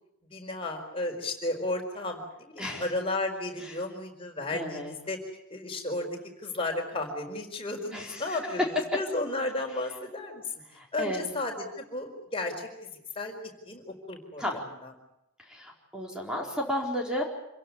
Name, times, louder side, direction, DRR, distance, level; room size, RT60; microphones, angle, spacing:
voice 1, 0.3-5.2 5.5-8.6 8.9-10.4 10.9-12.9 13.1-13.3 13.7-14.4 14.8-14.9, left 2 dB, 25° left, 2 dB, 4.8 m, -33 dB
voice 2, 2.6-2.9 3.6-3.8 4.5-4.9 7.9-8.4 10.7-11.3 14.4-14.6 15.4-17.2, equal, 5° right, -1 dB, 4.2 m, -33 dB
27.5 x 16.5 x 9.8 m, 0.84 s
head